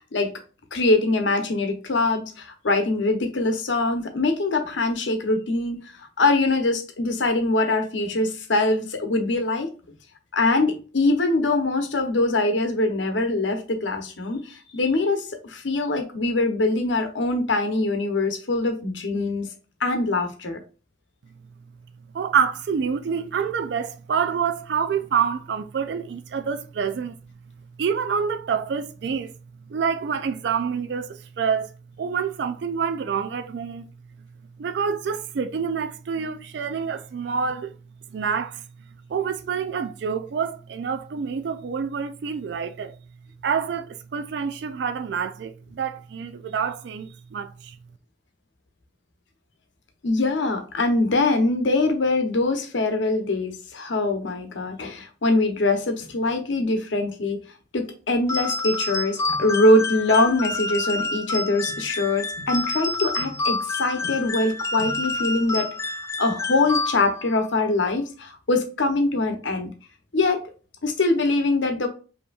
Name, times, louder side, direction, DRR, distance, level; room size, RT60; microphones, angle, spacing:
voice 1, 0.7-5.8 6.2-9.7 10.3-19.5 19.8-20.6 50.0-57.4 57.7-65.7 66.2-69.7 70.1-70.4 70.8-71.9, left 2 dB, 90° left, 0.9 m, -23 dB
voice 2, 22.1-27.2 27.8-29.3 29.7-31.7 32.0-33.9 34.6-37.7 38.1-38.6 39.1-43.0 43.4-47.8, right 6 dB, 70° right, 0.3 m, -27 dB
sound 1, 58.3-67.3, left 3 dB, 15° left, 0.3 m, -28 dB
5.1 x 2.9 x 2.3 m
head